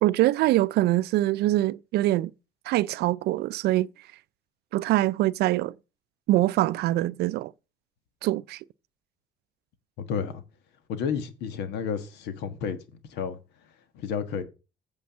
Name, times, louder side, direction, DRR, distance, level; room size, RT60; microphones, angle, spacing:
voice 1, 0.0-2.3 2.7-3.9 4.7-5.7 6.3-7.5 8.2-8.6, right 16 dB, 75° right, 0.4 m, -24 dB
voice 2, 10.0-10.4 10.9-12.8 13.1-13.4 13.9-14.4, left 7 dB, 85° left, 1.4 m, -31 dB
8.6 x 4.6 x 7.2 m
cardioid pair, 110°, 17 cm